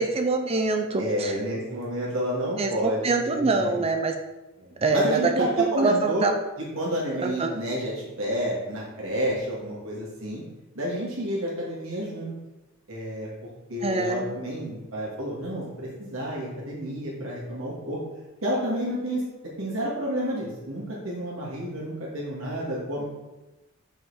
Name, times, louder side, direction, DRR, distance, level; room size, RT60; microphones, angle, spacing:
voice 1, 0.0-1.4 2.6-4.1 4.8-6.3 7.2-7.5 13.8-14.3, right 3 dB, 30° right, 5 dB, 0.5 m, -24 dB
voice 2, 1.0-3.8 4.6-6.3 6.7-10.4 10.7-12.3 12.9-13.3 13.7-18.0 18.4-19.2 19.6-23.0, equal, 75° right, -5 dB, 2.3 m, -30 dB
5.5 x 5.4 x 4.8 m, 1.1 s
head